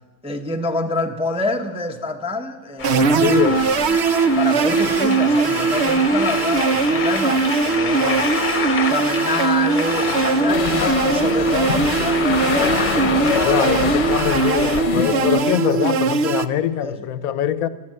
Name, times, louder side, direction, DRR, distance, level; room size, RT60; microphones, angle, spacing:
voice 1, 0.2-4.0 4.3-8.3 8.9-13.3 16.8-17.1, left 2 dB, 5° right, 0.7 m, -27 dB
sound 1, 2.8-14.8, left 5 dB, 40° left, 1.1 m, -27 dB
sound 2, 2.8-16.5, right 5 dB, 60° right, 0.8 m, -20 dB
voice 2, 2.9-3.6 13.4-17.7, left 10 dB, 80° left, 1.1 m, -23 dB
sound 3, 10.5-15.5, left 7 dB, 60° left, 1.1 m, -25 dB
16.0 x 12.0 x 7.6 m
omnidirectional pair, 1.5 m